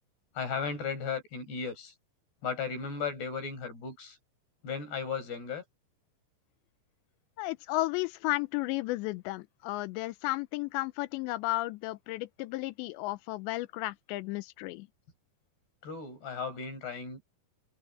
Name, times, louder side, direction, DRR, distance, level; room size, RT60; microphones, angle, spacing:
voice 1, 0.3-1.9 2.4-4.2 4.6-5.6 15.8-17.2, left 5 dB, 65° left, 8.1 m, -35 dB
voice 2, 7.4-14.9, left 19 dB, 85° left, 2.9 m, -33 dB
omnidirectional pair, 5.1 m